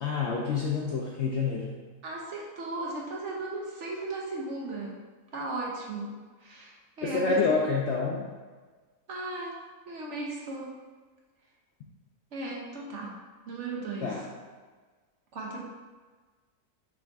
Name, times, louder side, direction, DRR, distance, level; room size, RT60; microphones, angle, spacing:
voice 1, 0.0-1.7 7.0-8.2 14.0-14.3, left 4 dB, 70° left, -2 dB, 0.6 m, -27 dB
voice 2, 2.0-5.0 5.3-6.1 6.4-7.6 9.1-9.6 9.9-10.7 12.3-13.1 13.5-14.1 15.3-15.6, right 2 dB, 60° right, -2 dB, 0.8 m, -36 dB
6.1 x 2.4 x 3.4 m, 1.4 s
omnidirectional pair, 1.6 m